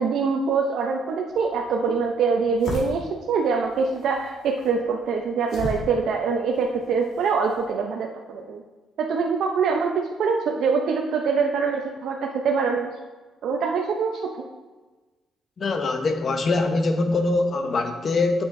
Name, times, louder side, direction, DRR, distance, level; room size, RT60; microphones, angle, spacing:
voice 1, 0.0-8.6 9.0-12.9 13.4-14.5, right 5 dB, 75° right, 1 dB, 0.6 m, -24 dB
sound 1, 1.3-7.7, left 1 dB, 75° left, 1.6 m, -38 dB
voice 2, 15.6-18.4, left 3 dB, 45° left, 6 dB, 0.9 m, -23 dB
8.9 x 7.0 x 2.6 m, 1.2 s
cardioid pair, 90°, 0 cm